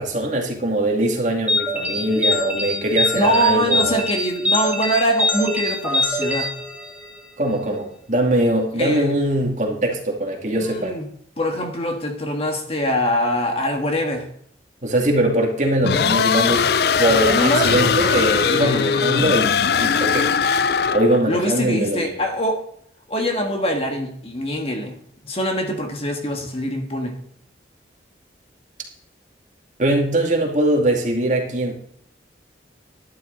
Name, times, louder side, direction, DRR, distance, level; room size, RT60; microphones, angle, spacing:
voice 1, 0.0-4.0 7.4-11.0 14.8-16.6 17.0-19.5 19.8-20.3 20.9-22.2 29.8-31.7, right 1 dB, 40° right, 1 dB, 2.3 m, -21 dB
sound 1, 1.5-7.2, left 1 dB, 10° right, 1.7 m, -24 dB
voice 2, 3.1-6.5 8.7-9.1 10.5-11.1 11.4-14.3 17.3-19.3 21.3-22.6 23.1-25.0 25.2-27.1, equal, 30° left, 3 dB, 1.7 m, -23 dB
sound 2, 15.8-21.2, left 6 dB, 55° left, 0.4 m, -20 dB
12.0 x 11.5 x 4.0 m, 0.68 s
head